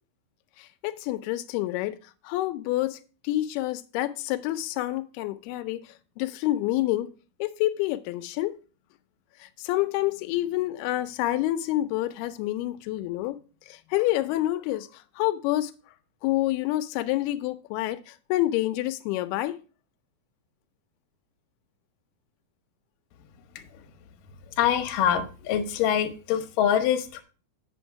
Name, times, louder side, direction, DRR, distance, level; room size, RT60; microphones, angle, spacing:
voice 1, 0.6-2.0 2.2-7.1 7.4-8.6 9.4-13.4 13.7-15.7 16.2-19.6, left 15 dB, 90° left, 2.6 m, -28 dB
voice 2, 24.6-27.2, left 9 dB, 70° left, 2.4 m, -24 dB
8.0 x 7.1 x 4.6 m
omnidirectional pair, 4.4 m